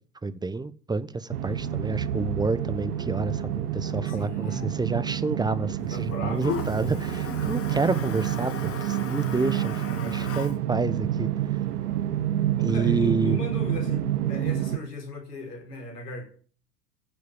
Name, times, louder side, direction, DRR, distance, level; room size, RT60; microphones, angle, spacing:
voice 1, 0.2-9.7 10.1-11.3 12.6-13.4, right 3 dB, 10° right, 1.0 m, -29 dB
sound 1, 1.3-14.8, right 11 dB, 70° right, 1.1 m, -28 dB
Toilet flush, 1.5-13.0, left 7 dB, 30° left, 2.0 m, -41 dB
voice 2, 4.1-4.7 5.9-6.5 7.1-7.4 9.4-10.4 12.6-16.3, left 2 dB, 75° left, 4.9 m, -38 dB
15.5 x 6.5 x 8.7 m
figure-of-eight pair, 80°, 47 cm